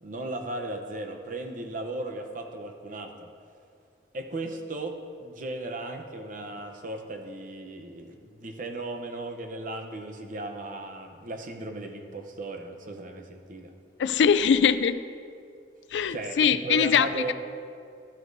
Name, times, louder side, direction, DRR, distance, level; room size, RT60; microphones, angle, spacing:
voice 1, 0.0-3.3 4.1-13.7 16.1-17.3, right 2 dB, 50° right, 5 dB, 0.8 m, -36 dB
voice 2, 14.0-15.0 15.9-17.3, left 7 dB, 80° left, 13 dB, 0.4 m, -22 dB
13.0 x 7.9 x 2.6 m, 2.3 s
head